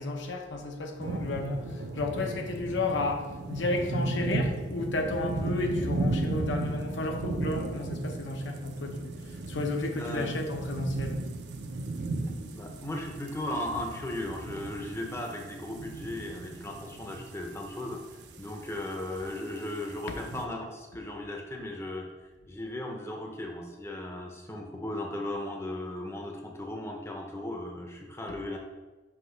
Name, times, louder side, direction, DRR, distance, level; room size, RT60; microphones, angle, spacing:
voice 1, 0.0-11.2 20.1-20.2, left 2 dB, 75° left, 3 dB, 0.7 m, -32 dB
sound 1, 1.0-20.4, right 2 dB, 60° right, 0.6 m, -35 dB
voice 2, 9.9-10.3 12.4-18.0 18.4-22.1 22.5-28.6, left 1 dB, 15° left, 1 dB, 0.6 m, -36 dB
5.7 x 3.0 x 5.5 m, 1.2 s
head